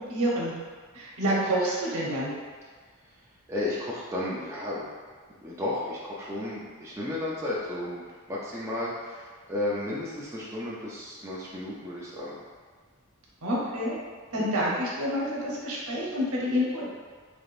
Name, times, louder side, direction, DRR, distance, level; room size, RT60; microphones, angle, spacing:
voice 1, 0.1-0.5 0.9-2.3 13.4-14.0 14.3-16.9, equal, 75° right, -5 dB, 0.9 m, -28 dB
voice 2, 3.5-4.9 5.4-12.4 14.3-14.5, left 1 dB, 10° right, -7 dB, 0.5 m, -33 dB
3.7 x 3.5 x 2.5 m, 1.5 s
head